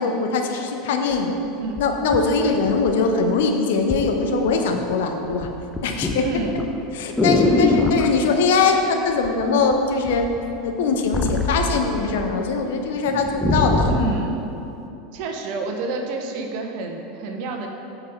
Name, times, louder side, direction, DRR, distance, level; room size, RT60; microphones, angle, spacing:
voice 1, 0.0-1.4 1.8-5.5 5.8-6.3 6.9-10.3 10.6-13.9, left 4 dB, 60° left, 4 dB, 0.8 m, -21 dB
sound 1, 1.1-1.2 1.8-3.2 3.9-4.1 4.5-4.9 5.2-8.1 9.2-9.7 10.0-12.3 12.7-12.8 13.1-14.2 14.9-15.0, left 2 dB, 10° left, 0.7 m, -23 dB
voice 2, 6.2-6.6 7.4-7.8 13.9-14.4 15.1-17.7, right 3 dB, 50° right, 3 dB, 0.9 m, -28 dB
7.5 x 5.1 x 5.6 m, 2.9 s
figure-of-eight pair, 80°, 0 cm